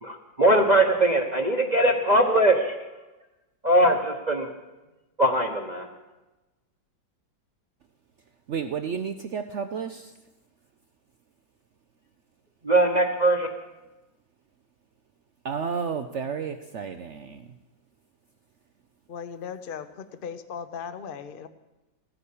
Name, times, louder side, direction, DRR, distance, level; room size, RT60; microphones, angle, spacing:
voice 1, 0.0-3.0 3.6-4.5 5.2-5.9 12.6-13.5, right 1 dB, 30° right, 2 dB, 0.9 m, -21 dB
voice 2, 8.5-10.1 15.4-17.5, right 6 dB, 75° right, 9 dB, 0.6 m, -32 dB
voice 3, 19.1-21.5, left 7 dB, 50° left, 10 dB, 0.6 m, -37 dB
15.0 x 9.9 x 8.5 m, 1.1 s
omnidirectional pair, 2.0 m